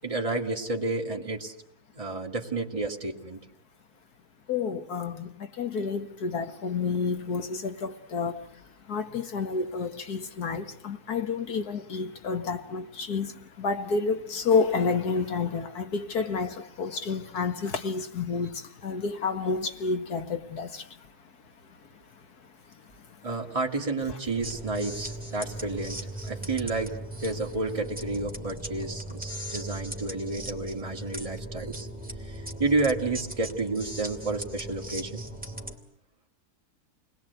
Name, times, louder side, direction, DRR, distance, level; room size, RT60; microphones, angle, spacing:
voice 1, 0.0-1.5 1.9-3.4 23.2-31.9 32.2-35.3, right 3 dB, 20° right, 2.3 m, -31 dB
voice 2, 4.5-8.5 8.9-20.9, left 5 dB, 70° left, 2.0 m, -30 dB
sound 1, 24.4-35.8, right 1 dB, 5° right, 2.3 m, -38 dB
29.0 x 21.0 x 8.2 m
omnidirectional pair, 1.7 m